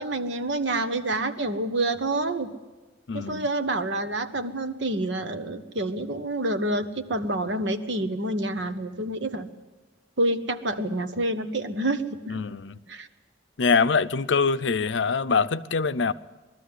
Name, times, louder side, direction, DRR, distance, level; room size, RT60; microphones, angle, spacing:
voice 1, 0.0-2.5 3.1-9.5 10.2-12.4 12.9-13.1, right 2 dB, 70° right, 1.4 m, -28 dB
voice 2, 3.1-3.4 12.3-12.8 13.6-16.1, left 5 dB, 70° left, 0.6 m, -24 dB
20.5 x 13.5 x 9.8 m
head